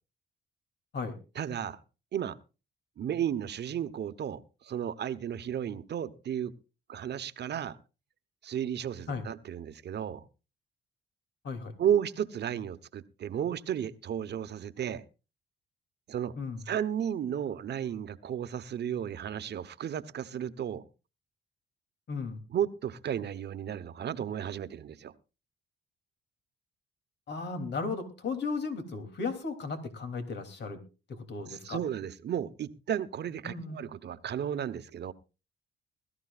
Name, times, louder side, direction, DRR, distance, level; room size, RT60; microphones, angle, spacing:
voice 1, 1.3-1.8 2.1-2.4 3.0-6.5 6.9-7.8 8.4-10.2 11.8-15.0 16.1-16.3 16.7-20.8 22.5-25.1 31.5-35.1, right 9 dB, 60° right, 1.0 m, -33 dB
voice 2, 22.1-22.4 27.3-30.8 31.1-31.8 33.4-33.8, left 4 dB, 60° left, 3.1 m, -35 dB
21.5 x 13.5 x 2.5 m
cardioid pair, 90°, 20 cm